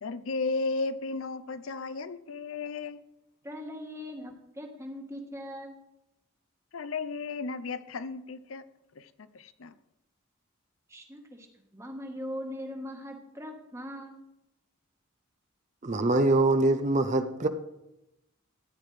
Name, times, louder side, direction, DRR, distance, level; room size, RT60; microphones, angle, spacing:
voice 1, 0.0-3.0 6.7-8.6 8.9-9.8, left 3 dB, 75° left, 0.6 m, -34 dB
voice 2, 3.4-5.8 10.9-11.5 11.7-14.2, equal, 15° right, 1.3 m, -40 dB
voice 3, 15.8-17.5, right 2 dB, 35° right, 0.6 m, -24 dB
14.0 x 9.8 x 3.3 m
head